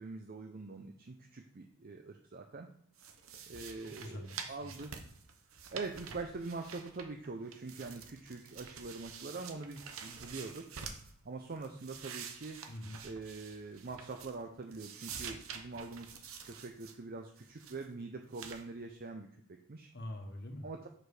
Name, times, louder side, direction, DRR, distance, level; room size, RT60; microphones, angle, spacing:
voice 1, 0.0-2.7 3.5-4.9 5.7-10.7 11.2-12.6 13.0-19.9 20.6-20.9, right 3 dB, 45° right, 4 dB, 0.6 m, -44 dB
sound 1, 3.0-7.3 7.5-11.1 11.5-14.5 14.7-17.0 17.4-17.9 18.3-18.6, right 6 dB, 65° right, 0.9 m, -48 dB
voice 2, 3.8-4.8 12.7-13.0 19.9-20.6, left 1 dB, 50° left, 3 dB, 1.3 m, -45 dB
6.1 x 5.1 x 4.9 m, 0.67 s
head